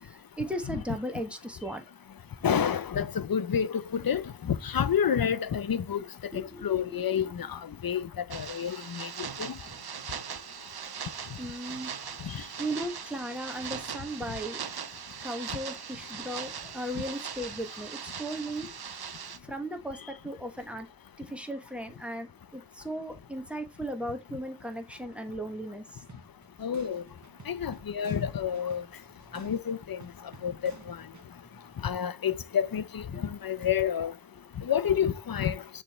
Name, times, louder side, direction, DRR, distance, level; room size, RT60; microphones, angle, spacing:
voice 1, 0.0-1.8 6.3-7.3 11.4-11.9 12.3-14.8 15.2-18.7 19.4-20.9 21.2-26.0, right 1 dB, 5° right, 1.4 m, -37 dB
voice 2, 2.4-6.0 6.3-9.1 9.5-9.6 12.3-12.4 26.6-27.0 27.5-28.8 29.3-30.0 30.4-31.0 31.8-34.1 34.6-35.6, left 8 dB, 65° left, 0.7 m, -29 dB
sound 1, 8.3-19.4, right 7 dB, 80° right, 0.8 m, -40 dB
sound 2, 26.1-31.3, right 4 dB, 50° right, 1.2 m, -53 dB
6.6 x 3.5 x 4.3 m
wide cardioid pair, 60°, 38 cm